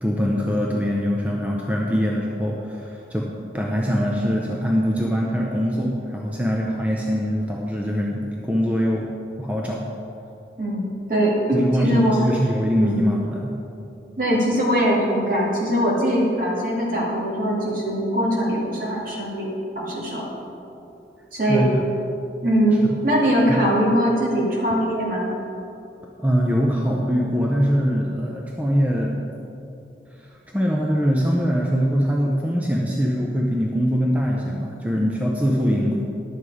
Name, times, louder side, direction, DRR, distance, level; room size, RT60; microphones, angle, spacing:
voice 1, 0.0-3.3 3.5-9.1 9.4-9.8 11.5-13.5 21.5-21.8 22.9-23.1 23.5-23.6 26.2-29.3 30.2-30.3 30.5-36.0, equal, 10° right, -2 dB, 0.6 m, -23 dB
voice 2, 10.6-12.1 12.8-13.0 14.2-20.3 21.3-21.7 22.4-25.3 35.7-35.9, equal, 50° right, -5 dB, 2.4 m, -21 dB
11.0 x 7.4 x 4.9 m, 2.8 s
head